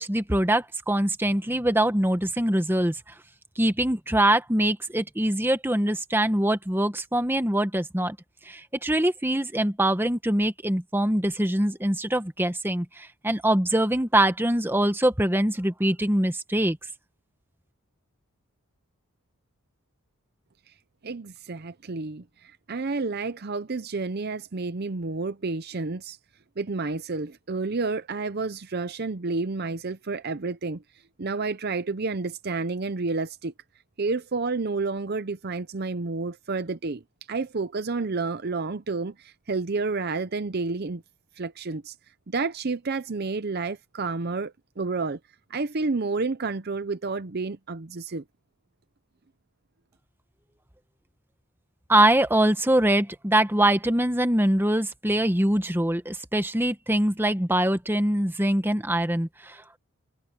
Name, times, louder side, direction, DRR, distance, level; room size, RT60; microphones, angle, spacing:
voice 1, 0.0-3.0 3.6-8.2 8.5-16.8 51.9-59.8, right 1 dB, 10° right, 1.2 m, -23 dB
voice 2, 21.0-26.2 26.6-30.8 31.2-33.5 34.0-37.0 37.3-41.0 41.4-41.9 42.3-45.2 45.5-48.2, right 3 dB, 45° right, 0.7 m, -30 dB
head